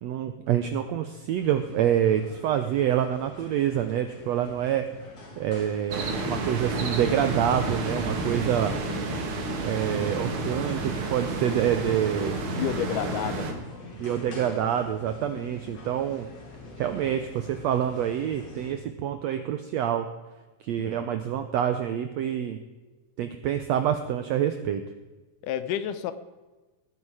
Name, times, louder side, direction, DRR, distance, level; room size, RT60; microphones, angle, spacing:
voice 1, 0.0-4.8 5.4-8.7 9.6-12.4 14.0-16.3 16.8-20.1 20.6-22.6 23.2-24.8, right 10 dB, 85° right, 9 dB, 1.5 m, -27 dB
sound 1, 1.3-18.7, left 2 dB, 50° left, 3.9 m, -46 dB
sound 2, 5.9-13.5, right 3 dB, 45° right, 2.1 m, -30 dB
voice 2, 12.6-13.5 20.8-21.0 25.4-26.1, left 10 dB, 75° left, 13 dB, 2.2 m, -30 dB
19.5 x 9.6 x 4.8 m, 1.2 s
omnidirectional pair, 3.9 m